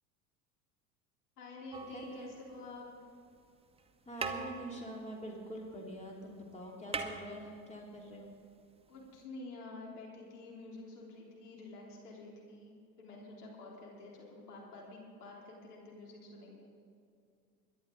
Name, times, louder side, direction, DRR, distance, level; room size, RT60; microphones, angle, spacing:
voice 1, 1.4-2.9 8.9-16.7, left 2 dB, 75° left, -3 dB, 3.8 m, -49 dB
sound 1, 1.7-2.9 3.8-3.9 4.2-6.0 6.3-6.4 6.6-8.0 9.2-9.3, right 4 dB, 10° right, 1.1 m, -42 dB
voice 2, 1.9-2.2 4.1-8.3, equal, 15° left, -1 dB, 2.9 m, -45 dB
22.5 x 11.0 x 3.9 m, 2.4 s
hypercardioid pair, 80°, 46 cm